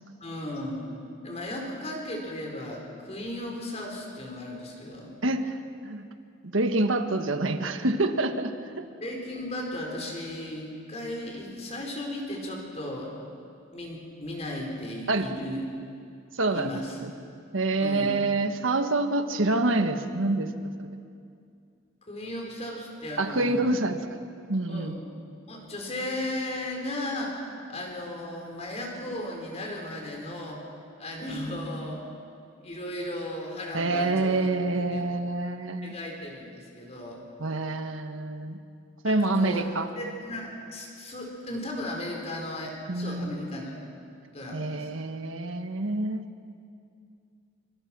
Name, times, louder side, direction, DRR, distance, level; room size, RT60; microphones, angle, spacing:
voice 1, 0.2-0.9 1.2-5.1 9.0-13.1 13.7-15.6 16.5-17.0 17.8-18.2 22.1-23.8 24.7-25.0 25.5-27.4 27.7-30.6 31.0-32.0 32.6-34.5 34.9-35.0 35.8-37.2 39.0-39.7 40.0-43.9 44.3-44.9, left 1 dB, 35° left, 0 dB, 4.5 m, -36 dB
voice 2, 5.2-6.0 6.4-8.9 15.1-15.3 16.3-17.1 17.5-20.5 20.8-20.9 23.2-24.0 24.5-25.0 33.7-35.9 37.4-38.6 39.0-39.9 42.9-43.5 44.5-46.2, right 2 dB, 80° right, 7 dB, 1.4 m, -27 dB
25.5 x 25.0 x 6.1 m, 2.4 s
head